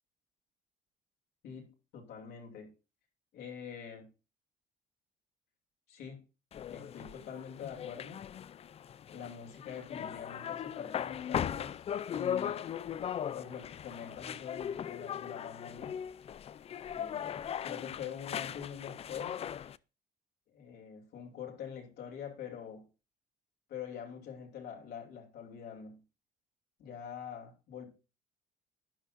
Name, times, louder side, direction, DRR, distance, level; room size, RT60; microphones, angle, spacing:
voice 1, 1.4-2.7 3.3-4.1 5.9-6.2 6.7-8.2 9.1-11.8 12.1-12.7 13.3-16.0 16.9-19.4 20.5-22.9 23.7-26.0 26.8-27.9, left 8 dB, 70° left, 2.8 m, -45 dB
sound 1, 6.5-19.8, left 9 dB, 35° left, 0.4 m, -39 dB
12.0 x 9.5 x 2.6 m
cardioid pair, 110°, 17 cm